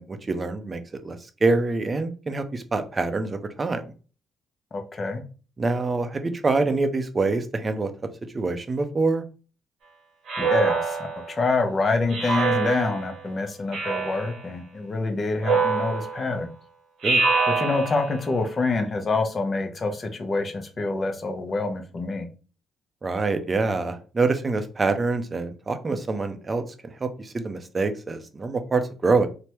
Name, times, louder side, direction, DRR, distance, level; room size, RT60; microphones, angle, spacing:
voice 1, 0.0-3.8 5.6-7.9 8.3-9.2 17.0-17.2 23.0-29.3, right 3 dB, 35° right, 8 dB, 0.5 m, -25 dB
voice 2, 4.7-5.2 10.4-16.5 17.5-22.3, left 3 dB, 40° left, 5 dB, 0.7 m, -26 dB
Speech synthesizer, 10.3-11.4 12.1-13.1 13.7-14.4 15.4-16.3 17.0-18.2, right 4 dB, 75° right, 1.0 m, -25 dB
3.3 x 2.1 x 2.9 m, 0.37 s
supercardioid pair, 70°, 0 cm